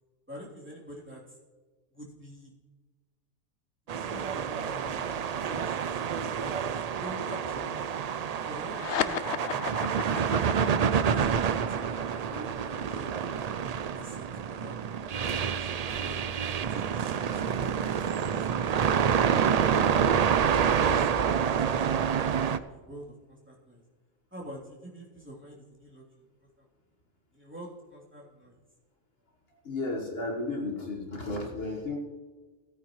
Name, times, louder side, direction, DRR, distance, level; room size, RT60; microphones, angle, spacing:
voice 1, 0.3-1.4 1.9-2.5 3.9-6.5 7.0-7.9 8.4-9.2 11.0-13.4 13.9-14.8 15.2-16.2 16.7-17.8 18.3-19.0 20.6-23.8 24.3-26.3 26.6-26.7 27.3-28.6, equal, 10° right, -6 dB, 3.2 m, -46 dB
sound 1, 3.9-22.6, right 7 dB, 75° right, 0.3 m, -28 dB
sound 2, 8.7-15.5, left 9 dB, 70° left, 0.8 m, -37 dB
voice 2, 29.5-32.0, left 2 dB, 55° left, 0 dB, 1.6 m, -33 dB
16.5 x 9.3 x 3.1 m, 1.4 s
omnidirectional pair, 1.3 m